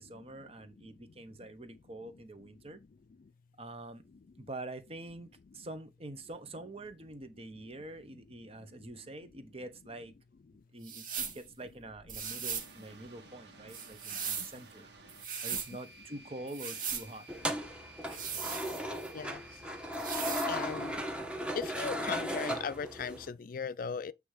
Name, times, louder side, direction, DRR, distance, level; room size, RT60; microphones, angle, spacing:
voice 1, 0.0-2.8 3.6-4.0 4.5-5.3 5.5-10.1 10.7-14.9 15.4-17.3 18.1-18.2, right 2 dB, 35° right, 1.0 m, -46 dB
sound 1, 10.8-11.4 12.1-12.7 13.7-14.6 15.1-15.7 16.5-17.1 18.1-19.1 19.9-20.5, right 7 dB, 50° right, 1.9 m, -38 dB
sound 2, 12.5-21.0, right 2 dB, 70° right, 2.0 m, -55 dB
sound 3, 17.3-23.3, equal, 5° right, 1.1 m, -36 dB
voice 2, 20.5-21.0 21.6-24.1, left 6 dB, 50° left, 0.4 m, -37 dB
8.4 x 3.4 x 4.9 m
head